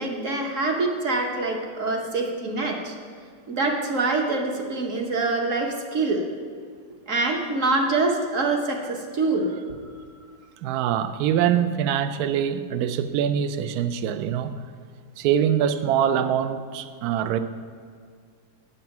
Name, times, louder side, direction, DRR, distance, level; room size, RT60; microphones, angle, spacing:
voice 1, 0.0-2.9 3.5-6.2 7.1-9.5, right 3 dB, 50° right, 2 dB, 1.2 m, -25 dB
voice 2, 10.6-14.6 15.2-17.4, right 9 dB, 70° right, 11 dB, 0.9 m, -24 dB
8.3 x 7.4 x 5.9 m, 2.1 s
omnidirectional pair, 2.0 m